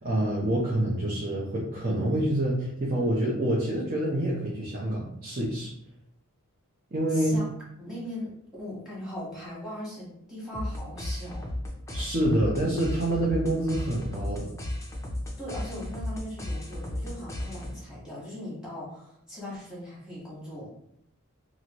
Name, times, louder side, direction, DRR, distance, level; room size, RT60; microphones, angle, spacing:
voice 1, 0.0-5.7 6.9-7.4 11.9-14.5, right 1 dB, 40° right, -5 dB, 0.7 m, -27 dB
voice 2, 7.1-7.4 7.8-8.3 8.6-11.4 15.4-20.7, left 1 dB, 5° right, -7 dB, 1.3 m, -39 dB
sound 1, 10.5-18.0, left 1 dB, 15° left, 0.5 m, -35 dB
2.9 x 2.5 x 2.9 m, 0.73 s
head